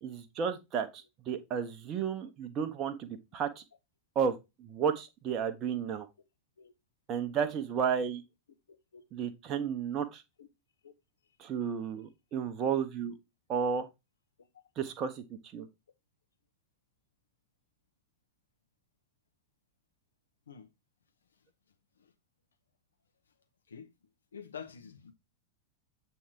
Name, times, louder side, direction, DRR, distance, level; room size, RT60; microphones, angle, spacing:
voice 1, 0.0-3.6 4.1-6.1 7.1-8.2 9.1-10.2 11.4-13.1 13.5-13.9 14.8-15.7, right 7 dB, 30° right, 0.9 m, -33 dB
voice 2, 24.3-25.1, left 7 dB, 70° left, 1.2 m, -47 dB
8.4 x 3.4 x 4.5 m
figure-of-eight pair, 90°, 0 cm